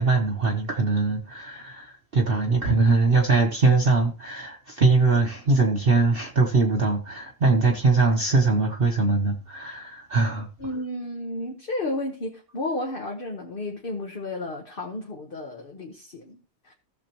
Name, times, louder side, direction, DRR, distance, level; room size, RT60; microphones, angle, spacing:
voice 1, 0.0-10.5, right 3 dB, 40° right, 1.0 m, -22 dB
voice 2, 10.6-16.7, left 2 dB, 40° left, 1.2 m, -32 dB
15.5 x 6.7 x 3.0 m
omnidirectional pair, 1.7 m